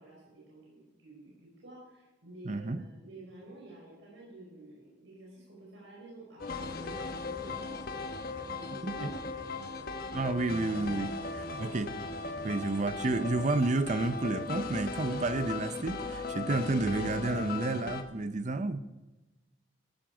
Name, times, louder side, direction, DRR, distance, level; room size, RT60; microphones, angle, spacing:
voice 1, 0.0-7.8 8.3-9.2 9.6-10.2 10.6-11.4 12.4-12.6, right 2 dB, 75° right, -4 dB, 5.0 m, -51 dB
voice 2, 2.4-2.8 8.8-9.1 10.1-11.9 12.4-18.8, right 2 dB, 40° right, 12 dB, 0.6 m, -31 dB
sound 1, 6.4-18.0, left 3 dB, 50° left, 1.2 m, -38 dB
14.0 x 13.5 x 5.0 m, 1.1 s
head